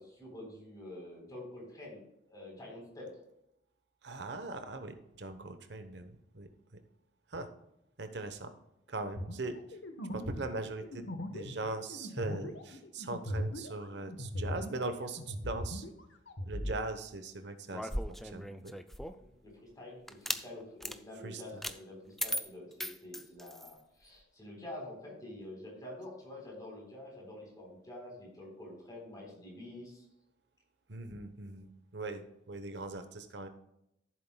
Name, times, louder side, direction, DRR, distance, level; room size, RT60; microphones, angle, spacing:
voice 1, 0.0-2.0 2.3-3.1 19.2-30.0, left 1 dB, 20° left, -2 dB, 3.9 m, -47 dB
voice 2, 4.0-6.5 7.3-7.5 8.0-8.5 8.9-9.8 10.1-15.9 16.5-18.7 21.2-21.7 30.9-33.5, right 2 dB, 65° right, 9 dB, 1.0 m, -40 dB
sound 1, 9.2-14.9 15.2-16.8, equal, 75° left, 1.2 m, -39 dB
sound 2, 17.7-19.3 20.1-20.4 20.8-21.0 21.6-21.8 22.2-23.7, equal, ahead, 0.4 m, -37 dB
14.0 x 7.7 x 2.3 m, 0.82 s
head